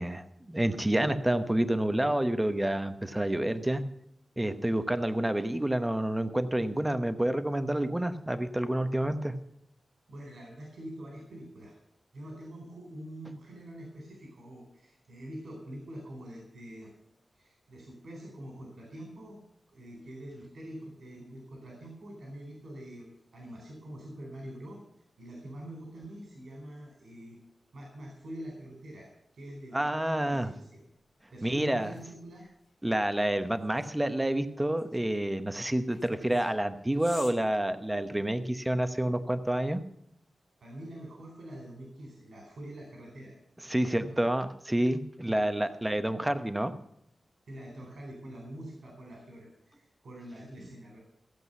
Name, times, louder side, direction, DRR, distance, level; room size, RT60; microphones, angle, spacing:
voice 1, 0.0-3.8 4.4-9.3 29.7-30.5 31.4-31.9 32.8-39.8 43.6-46.7, right 1 dB, 10° right, 10 dB, 1.0 m, -28 dB
voice 2, 10.1-11.7 12.1-16.9 17.3-19.4 19.7-24.8 25.2-27.4 27.7-30.8 31.3-32.5 40.6-43.3 43.8-44.3 45.2-45.7 47.5-51.0, right 1 dB, 85° right, 0 dB, 4.2 m, -45 dB
sound 1, 31.1-38.5, left 4 dB, 70° left, 2.3 m, -54 dB
15.0 x 7.9 x 6.9 m, 0.77 s
wide cardioid pair, 110°, 0 cm